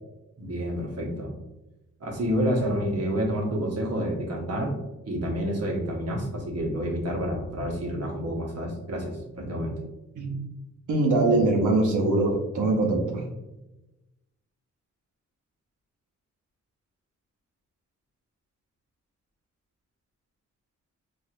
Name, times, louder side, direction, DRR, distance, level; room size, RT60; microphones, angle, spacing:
voice 1, 0.4-1.3 2.0-4.7 5.1-9.8, equal, 55° right, 0 dB, 1.0 m, -29 dB
voice 2, 10.9-13.2, right 2 dB, 85° right, 1 dB, 0.8 m, -22 dB
4.3 x 2.6 x 2.5 m, 0.99 s
cardioid pair, 70°, 29 cm